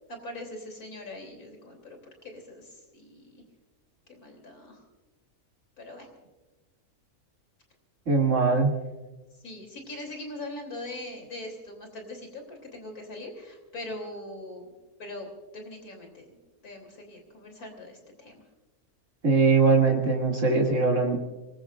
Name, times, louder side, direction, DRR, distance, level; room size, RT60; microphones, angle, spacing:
voice 1, 0.1-3.4 4.1-4.8 5.8-6.1 9.4-14.7 15.0-15.3 15.5-16.3 16.6-18.4, left 1 dB, 75° left, 3 dB, 3.7 m, -41 dB
voice 2, 8.1-8.7 19.2-21.2, right 4 dB, 55° right, -1 dB, 2.8 m, -21 dB
25.5 x 21.0 x 2.5 m, 1.2 s
omnidirectional pair, 1.6 m